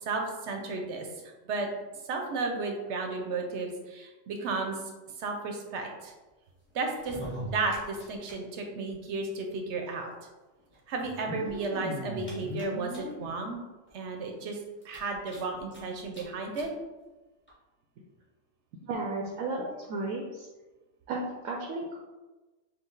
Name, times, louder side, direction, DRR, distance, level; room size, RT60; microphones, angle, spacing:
voice 1, 0.1-1.1 1.5-1.7 2.1-4.8 5.2-6.1 6.7-10.1 10.9-13.6 13.9-14.6 14.8-16.7, right 3 dB, 65° right, 3 dB, 0.9 m, -33 dB
sound 1, 7.0-8.3 8.6-8.7 8.9-9.0 10.0-10.1 11.0-13.3 13.9-14.0 14.3-14.4 14.8-15.8 16.1-16.2 16.5-16.7 17.5-17.6, equal, 10° left, 1.1 m, -39 dB
voice 2, 18.9-20.5 21.1-22.0, right 2 dB, 90° right, -2 dB, 1.0 m, -34 dB
4.6 x 2.3 x 3.8 m, 1.2 s
omnidirectional pair, 1.4 m